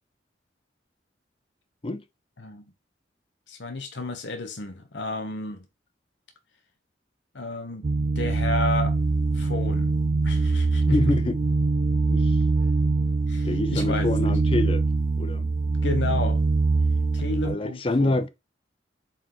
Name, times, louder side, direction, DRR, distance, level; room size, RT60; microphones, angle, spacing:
voice 1, 3.5-5.6 7.3-7.8 8.2-8.9 9.3-9.9 10.2-11.1 13.3-14.1 15.8-16.4 17.1-18.2, left 2 dB, 75° left, 1.0 m, -32 dB
sound 1, 7.8-17.6, right 3 dB, 45° right, 0.4 m, -23 dB
voice 2, 10.9-11.4 12.1-12.3 13.4-14.8 15.2-15.5 17.4-18.3, left 2 dB, 30° left, 0.6 m, -26 dB
7.3 x 4.6 x 3.1 m
head